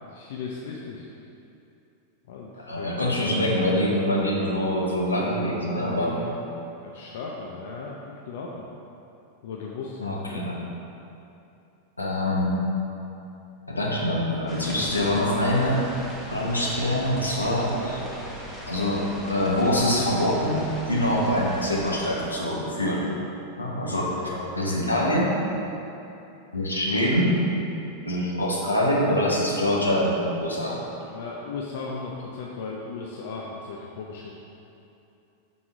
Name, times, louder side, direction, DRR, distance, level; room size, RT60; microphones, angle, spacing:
voice 1, 0.0-1.1 2.3-3.1 6.1-6.4 6.8-8.7 9.4-10.4 17.9-18.2 23.8-25.0 31.0-34.3, left 4 dB, 55° left, -2 dB, 0.5 m, -37 dB
voice 2, 2.6-6.2 10.0-10.6 12.0-12.5 13.7-15.8 16.3-18.0 18.7-23.0 23.6-25.3 26.5-27.3 28.1-30.8, left 1 dB, 80° left, -4 dB, 1.0 m, -24 dB
sound 1, 14.5-22.2, equal, 5° right, 1.0 m, -39 dB
5.9 x 3.9 x 4.7 m, 2.8 s
figure-of-eight pair, 90°, 0 cm